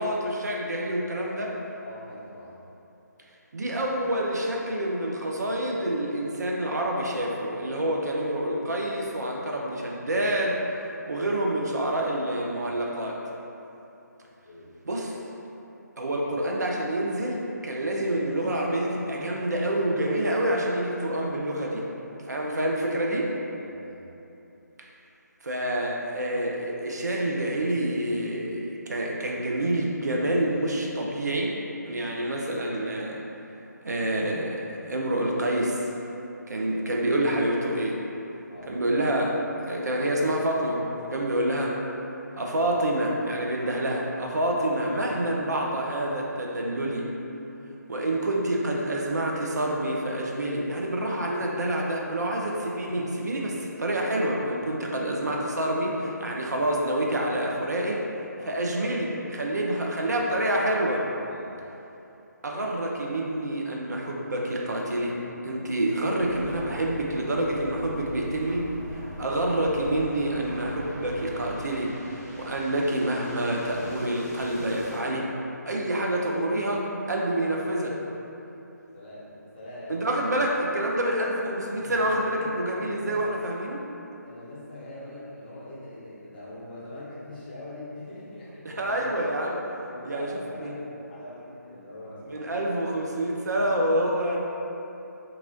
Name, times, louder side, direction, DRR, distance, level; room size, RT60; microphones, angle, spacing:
voice 1, 0.0-1.5 3.5-10.6 11.1-13.2 14.9-15.1 16.0-21.8 22.2-23.4 25.4-31.5 31.9-33.2 33.8-35.9 36.5-38.0 38.7-39.4 39.7-41.8 42.3-47.1 47.9-58.0 58.5-61.0 62.4-65.2 65.4-75.3 75.7-78.0 79.9-83.8 88.6-89.6 90.0-90.3 90.6-90.7 92.3-94.4, right 1 dB, 65° right, -1 dB, 0.4 m, -27 dB
voice 2, 1.8-2.6 14.4-14.7 23.5-24.0 38.5-38.7 52.8-53.2 58.4-58.7 61.3-61.5 78.9-80.1 81.7-83.4 84.2-89.2 89.9-92.8, left 1 dB, 30° left, -8 dB, 0.7 m, -42 dB
sound 1, 64.4-75.0, equal, 40° right, 1.3 m, -46 dB
sound 2, 66.2-71.5, equal, 10° right, 0.7 m, -41 dB
2.9 x 2.4 x 2.6 m, 2.9 s
figure-of-eight pair, 145°, 10 cm